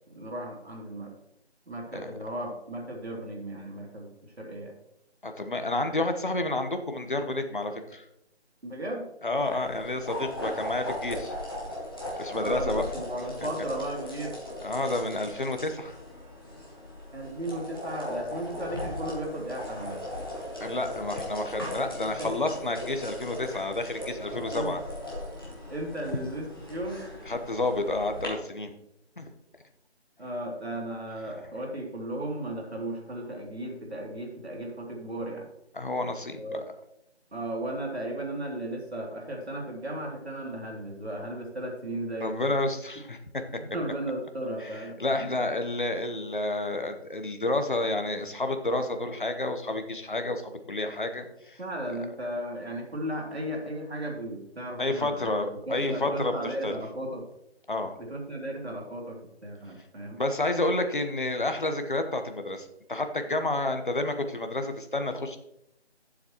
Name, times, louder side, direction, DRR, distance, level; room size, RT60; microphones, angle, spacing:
voice 1, 0.1-1.1 1.7-4.7 8.6-9.0 12.3-14.3 17.1-20.0 22.0-22.4 24.5-24.7 25.7-27.0 30.2-35.5 36.3-36.7 37.3-42.5 43.7-45.3 51.6-55.4 55.7-57.2 58.0-59.2 59.4-60.2, right 1 dB, 70° right, 0 dB, 3.0 m, -35 dB
voice 2, 5.2-8.0 9.2-11.3 12.2-12.9 14.6-16.0 20.6-24.8 27.2-28.7 29.2-29.3 35.7-36.6 42.2-43.4 44.6-51.6 54.8-56.8 57.7-58.0 60.2-65.4, left 2 dB, 50° left, 6 dB, 1.1 m, -30 dB
sound 1, 9.4-28.3, left 1 dB, 20° left, 1.4 m, -38 dB
12.0 x 7.5 x 3.1 m, 0.80 s
figure-of-eight pair, 180°, 33 cm